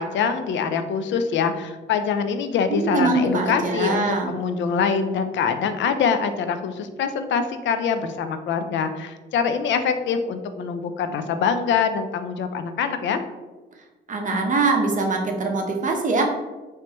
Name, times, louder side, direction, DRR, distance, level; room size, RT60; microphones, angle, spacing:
voice 1, 0.0-13.2, left 6 dB, 70° left, 9 dB, 0.5 m, -24 dB
voice 2, 2.7-4.3 14.1-16.2, right 3 dB, 40° right, 2 dB, 0.8 m, -23 dB
4.4 x 3.2 x 2.9 m, 1.2 s
cardioid pair, 90°, 20 cm